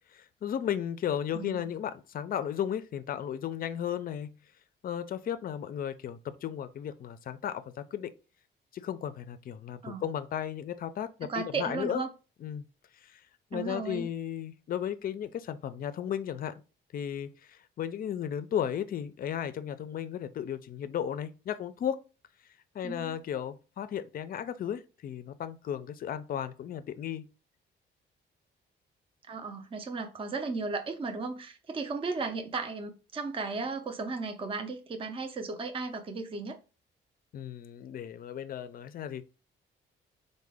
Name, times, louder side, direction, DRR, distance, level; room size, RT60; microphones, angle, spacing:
voice 1, 0.1-4.3 4.8-7.6 7.9-8.1 8.7-12.0 12.4-12.6 13.1-13.2 13.5-16.5 16.9-17.3 17.8-22.0 22.7-27.3 37.3-39.2, left 9 dB, 45° left, 0.4 m, -34 dB
voice 2, 1.3-1.7 9.8-10.0 11.2-12.1 13.5-14.1 22.8-23.1 29.3-36.6, right 4 dB, 25° right, 0.5 m, -35 dB
3.6 x 2.1 x 3.4 m
cardioid pair, 90°, 20 cm